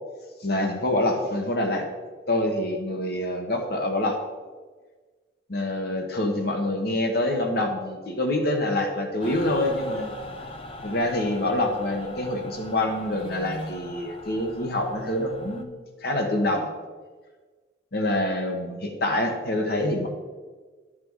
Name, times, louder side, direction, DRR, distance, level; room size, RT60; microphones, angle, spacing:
voice 1, 0.4-1.9 2.3-4.2 5.5-10.1 10.8-16.7 17.9-20.1, left 1 dB, 60° left, 3 dB, 1.3 m, -26 dB
Mechanical fan, 9.2-15.6, left 1 dB, 30° left, 0.7 m, -40 dB
12.0 x 6.1 x 4.7 m, 1.4 s
head